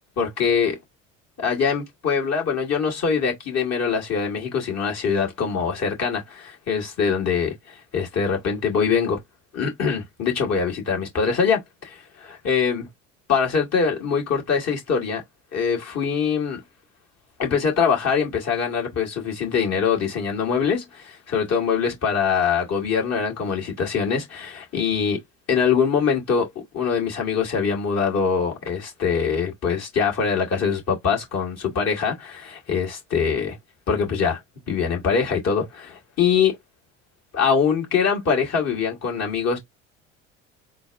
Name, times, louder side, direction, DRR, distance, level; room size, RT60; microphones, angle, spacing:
voice 1, 0.2-0.8 1.4-9.2 9.5-12.9 13.3-15.2 15.5-16.6 17.4-25.2 25.5-26.5 26.7-33.6 33.9-34.4 34.7-36.6 37.3-39.6, left 6 dB, 40° left, 2.2 m, -23 dB
3.9 x 2.5 x 3.4 m
hypercardioid pair, 75°, 39 cm